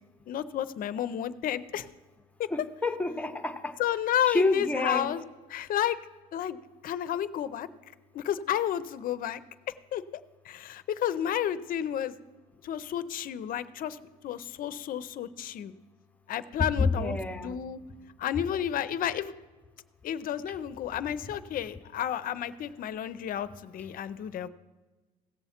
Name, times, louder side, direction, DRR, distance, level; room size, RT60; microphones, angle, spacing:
voice 1, 0.3-1.9 2.4-2.5 3.8-5.2 5.5-6.0 6.3-6.6 6.8-7.7 8.1-9.4 9.9-10.0 10.4-12.2 12.6-14.0 14.2-15.7 16.3-17.2 17.4-17.8 18.2-19.3 20.0-24.5, left 10 dB, 55° left, 14 dB, 0.5 m, -31 dB
voice 2, 2.5-3.7 4.3-5.1 16.8-17.6, left 3 dB, 10° left, 7 dB, 0.8 m, -28 dB
16.5 x 6.9 x 4.3 m, 1.2 s
cardioid pair, 110°, 17 cm